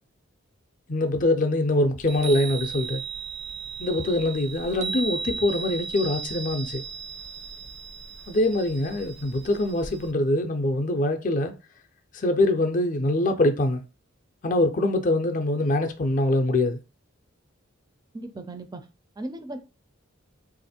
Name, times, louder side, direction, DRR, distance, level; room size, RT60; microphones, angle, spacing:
voice 1, 0.9-3.0 3.8-6.8 8.3-11.5 12.1-13.8 14.4-16.8, left 1 dB, 40° left, 0.5 m, -24 dB
Chime, 2.0-10.1, right 5 dB, 65° right, 0.6 m, -36 dB
voice 2, 18.1-18.9 19.2-19.6, right 2 dB, 20° right, 0.4 m, -36 dB
2.9 x 2.5 x 4.2 m
head